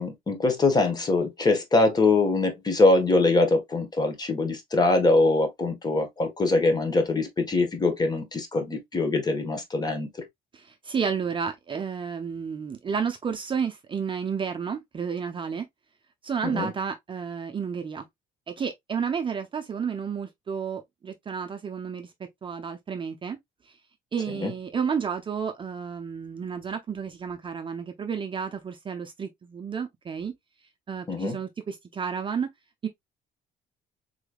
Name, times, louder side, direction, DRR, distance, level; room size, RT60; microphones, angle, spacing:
voice 1, 0.0-10.1 16.4-16.7 24.4-24.5 31.1-31.4, left 2 dB, 25° left, 1.2 m, -23 dB
voice 2, 10.5-15.7 16.2-18.0 18.5-22.1 22.4-23.4 24.1-30.3 30.9-32.5 32.8-32.9, right 6 dB, 30° right, 0.6 m, -31 dB
3.8 x 3.2 x 2.3 m
cardioid pair, 110°, 17 cm